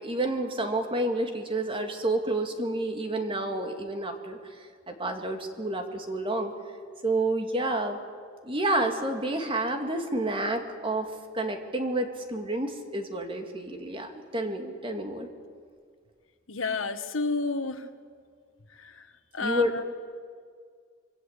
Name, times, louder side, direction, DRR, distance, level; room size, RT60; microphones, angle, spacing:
voice 1, 0.0-4.4 4.9-6.5 7.0-8.0 8.4-11.1 11.3-15.3 19.4-19.8, right 1 dB, 25° right, 5 dB, 2.4 m, -29 dB
voice 2, 16.5-17.8 18.8-19.0 19.3-19.8, left 3 dB, 85° left, 9 dB, 1.5 m, -30 dB
25.5 x 23.5 x 8.3 m, 2.1 s
head